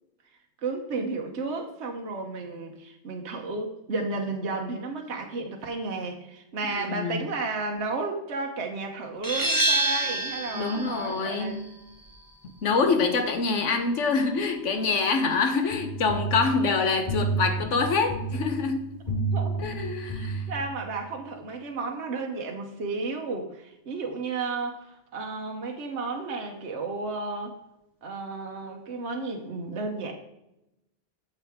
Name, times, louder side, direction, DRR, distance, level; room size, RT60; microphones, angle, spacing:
voice 1, 0.6-11.5 19.3-19.6 20.1-27.6 28.0-30.1, right 3 dB, 70° right, 2 dB, 1.2 m, -33 dB
voice 2, 6.6-7.2 10.5-11.7 12.6-18.8 19.6-20.4, left 4 dB, 90° left, 7 dB, 1.4 m, -26 dB
sound 1, 9.2-14.6, right 2 dB, 20° right, 1.1 m, -30 dB
sound 2, 15.7-21.0, right 3 dB, 40° left, 3.7 m, -31 dB
8.7 x 7.1 x 3.6 m, 0.89 s
omnidirectional pair, 1.2 m